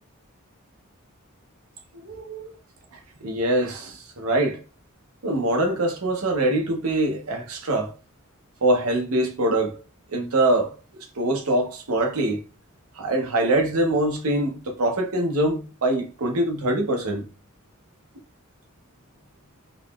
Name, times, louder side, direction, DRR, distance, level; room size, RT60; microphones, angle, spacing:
voice 1, 1.9-2.5 3.2-4.6 5.2-7.9 8.6-9.8 10.1-10.7 11.2-12.4 13.0-17.2, right 1 dB, 90° right, 0.8 m, -23 dB
3.9 x 2.9 x 2.3 m
head